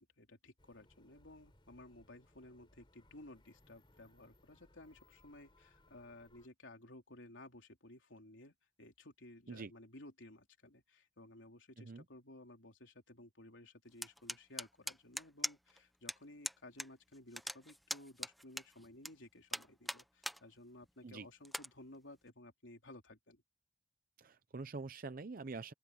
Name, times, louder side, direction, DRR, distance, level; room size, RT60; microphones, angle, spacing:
voice 1, 0.0-23.4, left 1 dB, 85° left, 3.5 m, -56 dB
sound 1, 0.6-6.5, left 1 dB, 25° left, 3.6 m, -68 dB
sound 2, 14.0-15.8 16.1-16.2 16.4-16.9 17.1-19.1 19.5-20.4 20.8-20.9 21.4-21.7, equal, ahead, 0.7 m, -41 dB
voice 2, 24.2-25.7, right 3 dB, 50° right, 0.6 m, -45 dB
open air
head